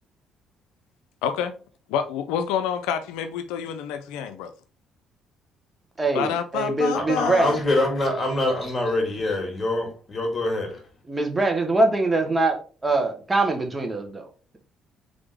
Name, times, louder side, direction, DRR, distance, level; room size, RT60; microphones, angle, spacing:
voice 1, 1.2-1.5 1.9-4.5 6.1-7.6, left 8 dB, 90° left, 0.4 m, -28 dB
voice 2, 6.0-7.9 11.1-12.6 12.8-14.3, right 2 dB, 20° right, 1.0 m, -23 dB
voice 3, 6.9-10.8, left 1 dB, 35° left, 1.9 m, -25 dB
3.9 x 3.4 x 3.4 m
supercardioid pair, 70°, 0 cm